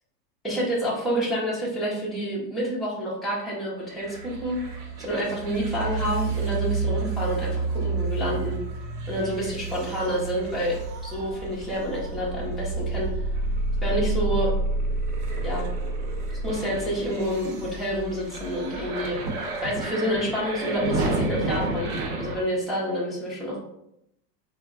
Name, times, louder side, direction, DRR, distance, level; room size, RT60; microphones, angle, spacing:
voice 1, 0.4-4.6 5.0-8.6 9.1-13.1 13.8-14.5 15.4-15.7 16.4-21.9 22.2-23.6, equal, ahead, -7 dB, 0.4 m, -28 dB
sound 1, 4.0-22.4, right 2 dB, 45° right, 0.8 m, -29 dB
3.6 x 2.1 x 3.6 m, 0.80 s
supercardioid pair, 130°, 49 cm